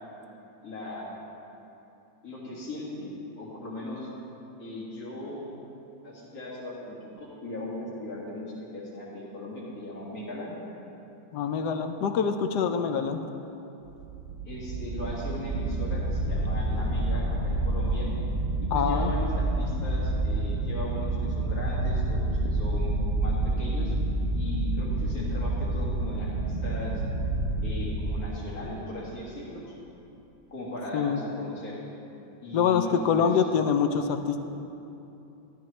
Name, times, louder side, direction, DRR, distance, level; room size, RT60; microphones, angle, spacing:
voice 1, 0.6-1.2 2.2-4.1 4.6-5.5 6.0-8.5 8.7-10.5 14.5-18.1 18.6-22.9 23.2-23.9 24.3-27.0 27.6-29.6 30.5-31.8 32.4-33.4, left 1 dB, 55° left, -5 dB, 2.4 m, -38 dB
voice 2, 11.3-13.2 18.7-19.1 30.9-31.2 32.5-34.4, left 7 dB, 75° left, 7 dB, 1.1 m, -25 dB
sound 1, 13.9-28.2, right 2 dB, 55° right, 0.7 m, -28 dB
12.5 x 12.0 x 3.2 m, 2.9 s
omnidirectional pair, 1.9 m